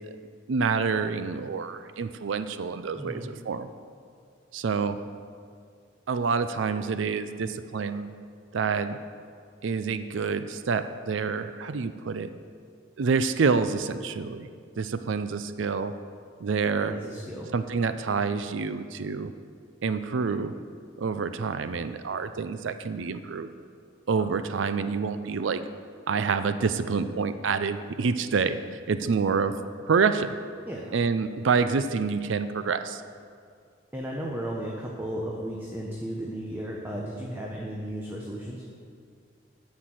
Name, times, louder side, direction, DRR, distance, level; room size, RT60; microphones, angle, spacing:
voice 1, 0.5-3.7 4.5-5.0 6.1-8.1 8.5-9.0 9.6-12.3 13.0-14.5 14.8-15.9 16.4-16.9 17.5-19.3 19.8-20.6 21.0-23.5 24.1-25.6 26.1-30.3 30.9-33.0, right 5 dB, 75° right, 11 dB, 0.5 m, -27 dB
voice 2, 3.0-3.3 16.8-17.5 30.7-30.9 33.9-38.6, right 1 dB, 10° right, -2 dB, 0.9 m, -35 dB
10.0 x 6.7 x 7.5 m, 2.3 s
head